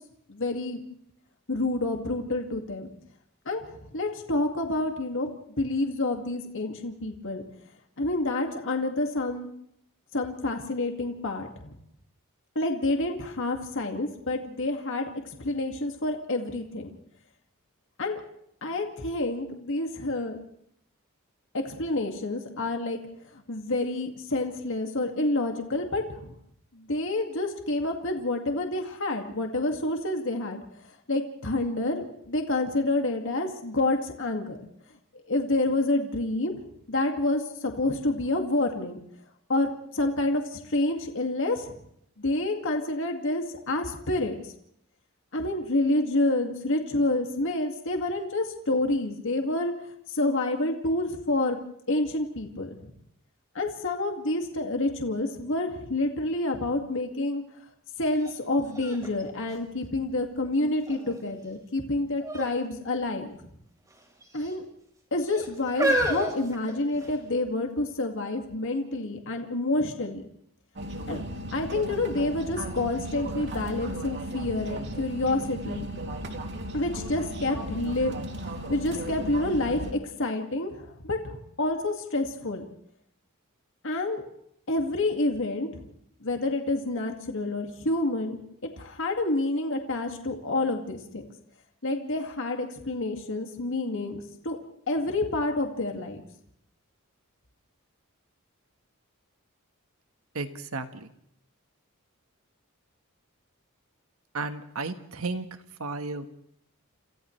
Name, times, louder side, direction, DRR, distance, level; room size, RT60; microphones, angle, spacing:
voice 1, 0.3-0.8 1.5-2.9 3.5-5.3 5.6-7.4 8.0-9.5 10.1-11.7 12.6-15.1 15.4-16.9 18.0-18.2 18.6-20.4 21.5-23.0 23.3-26.3 26.7-30.6 31.1-34.6 35.3-36.5 36.9-39.0 39.5-41.7 42.2-44.5 45.3-49.7 50.1-51.6 51.9-52.9 53.5-57.4 58.0-63.4 64.3-64.6 65.1-70.2 71.1-71.2 71.5-75.9 76.7-78.2 78.7-82.6 83.8-84.2 84.7-85.8 86.2-88.4 88.8-91.2 91.8-94.2 94.4-94.6 94.9-96.2, left 2 dB, 65° left, 3 dB, 2.2 m, -28 dB
sound 1, 58.2-58.3 58.7-60.3 60.9-61.4 62.2-62.6 62.8-63.0 63.9-64.5 65.2-67.3 68.0-68.1, right 1 dB, 15° right, 4.4 m, -30 dB
sound 2, 70.8-79.9, right 1 dB, 55° right, 2.8 m, -36 dB
voice 2, 100.3-101.1 104.3-105.5 105.8-106.3, right 3 dB, 75° right, 8 dB, 1.5 m, -33 dB
28.5 x 28.0 x 3.3 m, 0.73 s
head